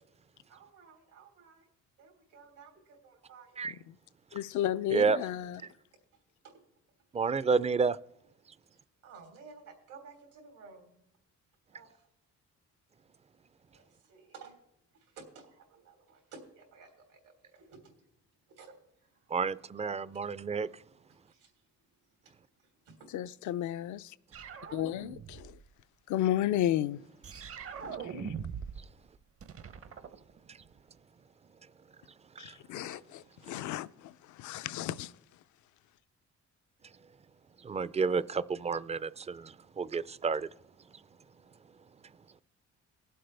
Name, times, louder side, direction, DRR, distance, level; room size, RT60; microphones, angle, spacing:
voice 1, 0.5-1.7 2.0-3.6 5.6-5.7 6.1-6.6 7.1-7.2 8.7-11.0 11.7-12.1 13.7-14.6 14.9-18.1 18.5-19.4 20.1-20.2 21.1-21.7 22.0-22.3 22.6-23.1, right 5 dB, 85° right, 3.4 m, -55 dB
voice 2, 4.3-5.6 23.1-24.1 24.7-25.1 26.1-27.0 27.8-28.1 32.4-34.1 34.4-35.1, left 12 dB, 75° left, 0.5 m, -32 dB
voice 3, 7.1-8.0 19.3-20.7 30.5-30.6 32.4-32.5 37.6-40.5, right 5 dB, 20° right, 0.4 m, -30 dB
sound 1, 24.3-25.6 27.2-28.9 29.2-30.8, right 7 dB, 50° right, 0.8 m, -42 dB
19.5 x 7.8 x 3.4 m
cardioid pair, 90°, 30 cm